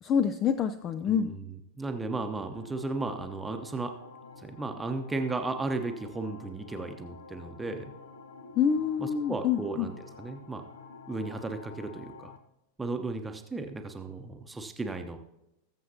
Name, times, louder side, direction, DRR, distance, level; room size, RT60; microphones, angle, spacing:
voice 1, 0.0-1.3 8.6-9.9, left 7 dB, 30° left, 12 dB, 0.4 m, -27 dB
voice 2, 1.1-1.4 1.8-3.9 4.4-7.9 9.0-10.6 11.1-12.3 12.8-15.2, right 3 dB, 10° right, 5 dB, 0.9 m, -35 dB
sound 1, 2.4-12.4, left 4 dB, 70° left, 0.9 m, -49 dB
20.0 x 7.4 x 2.8 m, 0.87 s
figure-of-eight pair, 90°, 0 cm